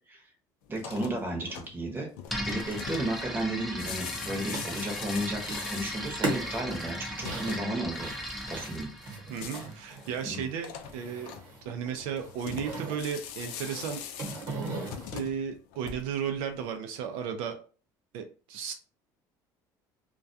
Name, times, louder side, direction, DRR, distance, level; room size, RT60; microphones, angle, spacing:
sound 1, 0.7-16.3, left 8 dB, 85° left, 0.4 m, -43 dB
voice 1, 0.7-2.1 2.4-8.1 8.5-8.9 10.2-10.4, right 1 dB, 25° right, 2 dB, 0.8 m, -33 dB
sound 2, 2.3-10.1, equal, ahead, 0.4 m, -38 dB
sound 3, 4.4-5.0 5.4-5.8 6.1-10.3 10.6-11.7 11.9-13.0 13.5-15.1, right 3 dB, 60° right, 1.0 m, -38 dB
voice 2, 9.3-11.3 11.6-14.0 15.1-17.6 18.1-18.7, right 7 dB, 85° right, 5 dB, 0.4 m, -34 dB
2.3 x 2.2 x 2.6 m, 0.37 s
cardioid pair, 120°, 9 cm